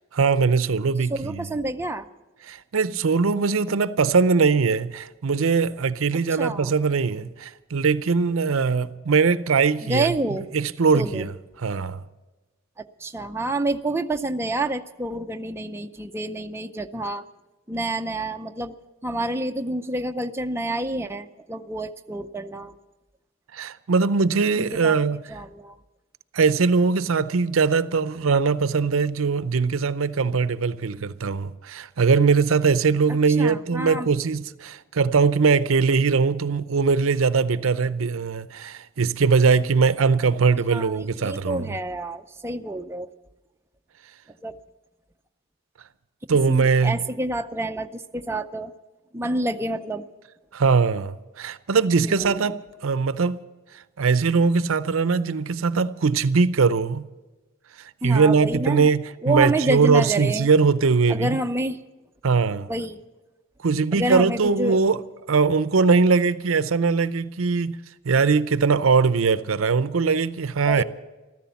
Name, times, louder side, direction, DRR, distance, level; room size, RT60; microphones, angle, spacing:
voice 1, 0.1-1.5 2.4-10.1 10.5-11.3 11.6-12.0 23.5-25.2 26.3-41.7 46.3-47.0 50.5-53.4 54.0-57.1 57.8-61.4 62.2-62.7 63.6-65.0 65.3-67.8 68.0-70.8, right 5 dB, 80° right, 0.6 m, -21 dB
voice 2, 1.1-2.1 6.4-6.7 9.9-10.5 10.9-11.3 12.8-17.2 17.7-18.7 19.0-22.7 24.8-25.0 25.3-25.8 33.4-34.1 40.7-43.1 44.4-44.5 46.5-48.7 49.1-50.1 52.0-52.4 58.0-58.9 59.2-60.5 61.1-61.8 62.7-63.0 63.9-64.8 70.7-70.8, right 2 dB, 10° right, 0.5 m, -28 dB
14.5 x 13.5 x 7.0 m
head